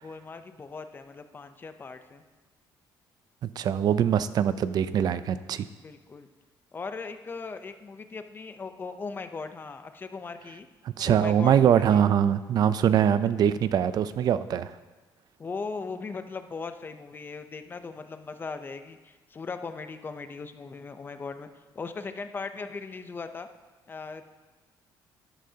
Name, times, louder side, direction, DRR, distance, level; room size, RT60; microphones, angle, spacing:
voice 1, 0.0-2.2 5.8-6.3 6.7-10.7 11.0-12.0 15.4-21.5 21.7-23.5 23.9-24.2, left 4 dB, 25° left, 9 dB, 0.6 m, -38 dB
voice 2, 3.6-5.7 11.0-14.7, right 9 dB, 55° right, 14 dB, 0.5 m, -23 dB
12.0 x 11.5 x 2.8 m, 1.3 s
cardioid pair, 125°, 8 cm